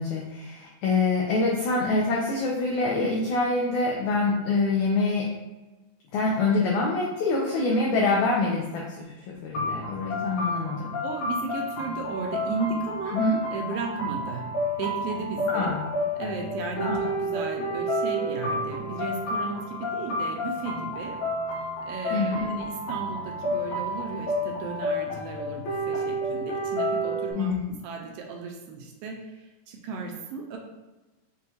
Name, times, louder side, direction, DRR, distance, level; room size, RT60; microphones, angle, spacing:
voice 1, 0.0-5.3 6.1-10.9 13.1-13.4 15.5-15.8 16.8-17.0 22.1-22.5 27.3-27.6, left 3 dB, 85° left, -3 dB, 1.7 m, -25 dB
sound 1, 9.5-27.3, equal, 70° left, 2.0 m, -30 dB
voice 2, 11.0-13.2 13.5-14.5 14.8-15.8 16.2-21.2 21.9-27.5 27.8-30.6, right 4 dB, 80° right, 1 dB, 2.1 m, -35 dB
6.3 x 2.2 x 2.7 m, 1.1 s
omnidirectional pair, 4.1 m